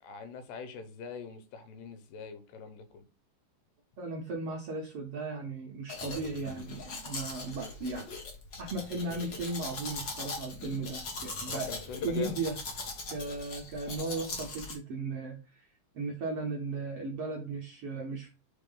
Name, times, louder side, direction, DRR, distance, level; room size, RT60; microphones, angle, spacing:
voice 1, 0.0-3.0 11.5-12.4, left 5 dB, 90° left, 2.6 m, -43 dB
voice 2, 4.0-8.1 8.6-11.7 12.0-12.6 13.1-15.7 15.9-18.3, right 3 dB, 75° right, 1.4 m, -36 dB
Domestic sounds home sounds, 5.9-14.8, left 3 dB, 50° left, 1.4 m, -40 dB
4.6 x 4.0 x 5.4 m
omnidirectional pair, 3.8 m